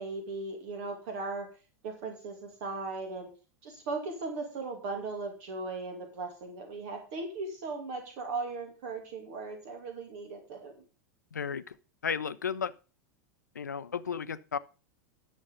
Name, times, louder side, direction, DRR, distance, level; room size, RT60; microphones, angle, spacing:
voice 1, 0.0-1.5 1.8-3.3 3.6-10.8, right 3 dB, 55° right, 4 dB, 2.6 m, -38 dB
voice 2, 11.3-11.7 12.0-12.7 13.5-14.6, left 6 dB, 80° left, 16 dB, 0.6 m, -33 dB
11.0 x 7.2 x 5.3 m, 0.35 s
figure-of-eight pair, 85°, 9 cm